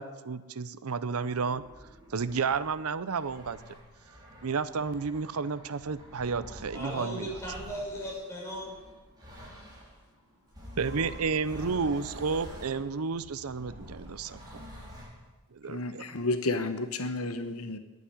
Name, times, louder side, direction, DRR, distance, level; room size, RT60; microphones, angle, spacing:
voice 1, 0.0-1.6 2.1-3.6 4.4-7.3 10.8-14.7 15.5-16.1, right 5 dB, 85° right, 15 dB, 0.7 m, -31 dB
sound 1, 1.2-10.0 10.5-15.3, equal, 20° right, 4.7 m, -47 dB
voice 2, 6.7-8.8, equal, 15° left, -4 dB, 6.6 m, -37 dB
voice 3, 15.7-17.8, left 2 dB, 85° left, 9 dB, 1.0 m, -31 dB
11.5 x 9.3 x 9.8 m, 1.1 s
head